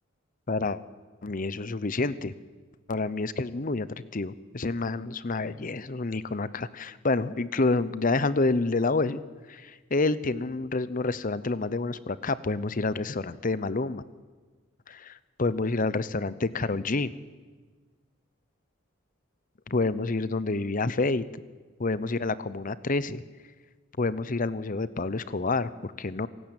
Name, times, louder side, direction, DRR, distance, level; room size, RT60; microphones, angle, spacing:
voice 1, 0.5-0.8 1.2-2.3 2.9-3.9 4.1-9.2 9.5-14.0 14.9-17.1 19.7-21.2 21.8-23.2 24.0-26.3, left 3 dB, 40° left, 16 dB, 0.8 m, -28 dB
26.5 x 17.5 x 9.0 m, 1.4 s
head